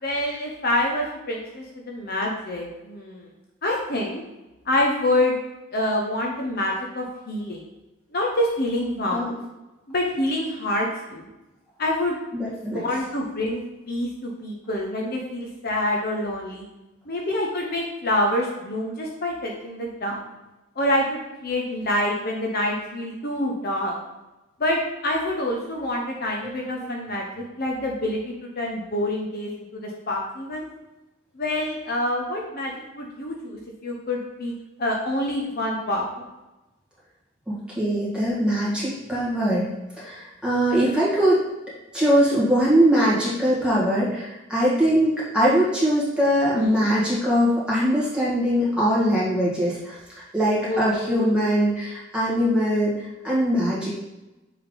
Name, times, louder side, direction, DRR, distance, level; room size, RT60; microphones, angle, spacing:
voice 1, 0.0-3.3 3.6-4.2 4.7-5.4 5.7-7.6 8.1-9.3 9.9-11.3 11.8-12.2 12.7-16.7 17.1-20.2 20.8-23.9 24.6-30.6 31.3-34.5 34.8-36.3 46.5-46.9 50.6-51.3, left 1 dB, 45° left, -1 dB, 0.7 m, -26 dB
voice 2, 12.3-12.8 26.4-26.7 37.5-39.7 40.0-41.4 41.9-53.9, equal, 5° right, -8 dB, 1.9 m, -22 dB
7.1 x 3.5 x 3.8 m, 1.0 s
head